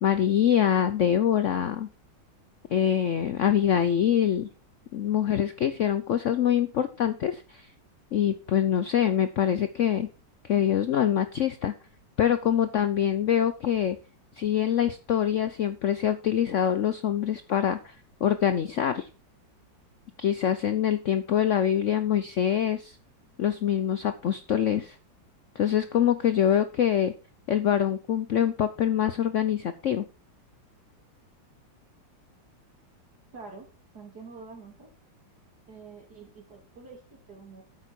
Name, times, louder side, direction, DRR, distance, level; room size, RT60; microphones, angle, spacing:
voice 1, 0.0-1.9 2.7-4.5 4.9-7.7 8.1-10.1 10.4-11.7 12.2-14.0 14.4-17.9 18.2-19.1 20.2-23.0 23.4-25.0 25.6-27.1 27.5-30.0, left 9 dB, 65° left, 11 dB, 0.7 m, -24 dB
voice 2, 33.3-33.7 33.9-34.9 35.7-37.6, right 4 dB, 60° right, 2 dB, 3.3 m, -46 dB
8.9 x 8.3 x 4.4 m, 0.32 s
omnidirectional pair, 2.0 m